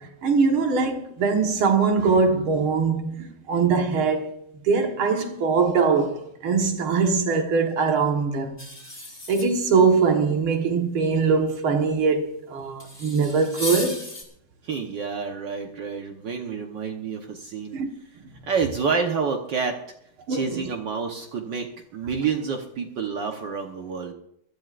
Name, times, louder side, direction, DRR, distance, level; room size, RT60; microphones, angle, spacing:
voice 1, 0.0-8.6 9.3-14.0 17.7-17.9 20.3-20.7, right 5 dB, 90° right, 2.2 m, -22 dB
sound 1, 8.6-9.9 12.8-14.2, left 2 dB, 10° left, 2.8 m, -35 dB
voice 2, 14.6-17.8 18.4-19.8 20.3-24.1, right 5 dB, 60° right, 1.6 m, -28 dB
22.5 x 12.5 x 2.5 m
omnidirectional pair, 2.2 m